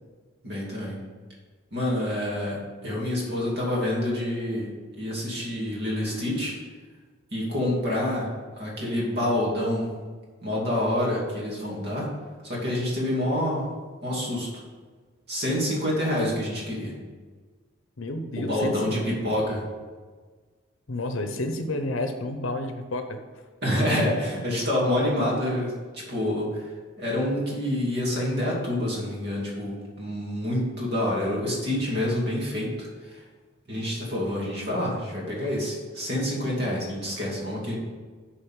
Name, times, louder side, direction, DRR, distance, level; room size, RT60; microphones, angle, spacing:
voice 1, 0.4-1.0 1.7-6.6 7.3-8.3 8.6-10.0 10.4-12.1 12.4-13.7 14.0-14.5 15.3-17.0 18.4-19.6 23.6-26.7 27.0-33.2 33.7-37.8, left 1 dB, 50° right, -4 dB, 2.6 m, -27 dB
voice 2, 18.0-18.8 20.9-23.2, left 2 dB, 75° left, 6 dB, 0.7 m, -30 dB
6.8 x 5.4 x 7.2 m, 1.5 s
head